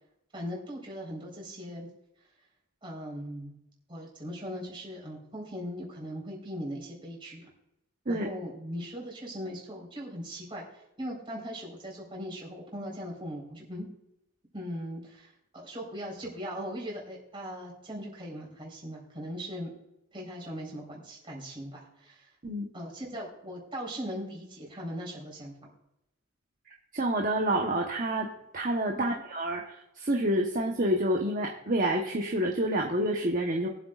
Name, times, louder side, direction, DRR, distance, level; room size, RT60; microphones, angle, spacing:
voice 1, 0.3-1.9 2.8-3.5 3.9-7.5 8.1-13.9 14.5-19.7 20.1-22.3 22.7-25.7 28.9-29.1, equal, 25° right, -3 dB, 4.1 m, -39 dB
voice 2, 26.9-28.3 28.5-33.7, right 1 dB, 40° right, 1 dB, 1.0 m, -28 dB
23.0 x 7.9 x 2.4 m, 0.86 s
head